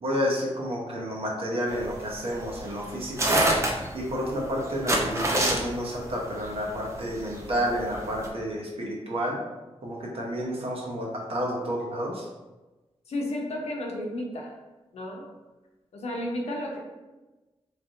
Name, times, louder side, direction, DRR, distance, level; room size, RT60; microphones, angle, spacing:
voice 1, 0.0-3.4 3.9-9.4 9.8-12.2, equal, 60° right, -2 dB, 0.9 m, -30 dB
sound 1, 1.7-8.3, right 1 dB, 25° right, 0.5 m, -27 dB
voice 2, 13.1-14.5 14.9-15.3 15.9-16.8, left 1 dB, 75° left, 0 dB, 0.7 m, -32 dB
4.2 x 3.3 x 2.6 m, 1.1 s
wide cardioid pair, 175°, 11 cm